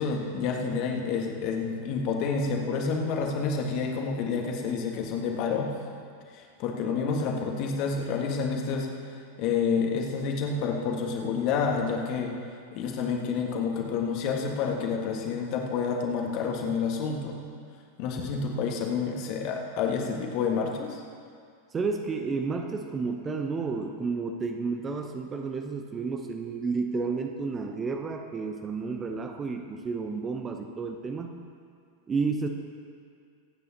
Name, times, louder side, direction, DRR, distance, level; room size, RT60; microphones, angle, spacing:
voice 1, 0.0-5.7 6.3-8.9 9.4-12.3 12.7-17.4 18.0-21.0, left 5 dB, 40° left, 1 dB, 1.7 m, -29 dB
voice 2, 21.7-31.3 32.1-32.5, right 4 dB, 20° right, 4 dB, 0.8 m, -31 dB
24.5 x 9.0 x 2.9 m, 2.2 s
figure-of-eight pair, 90°, 0 cm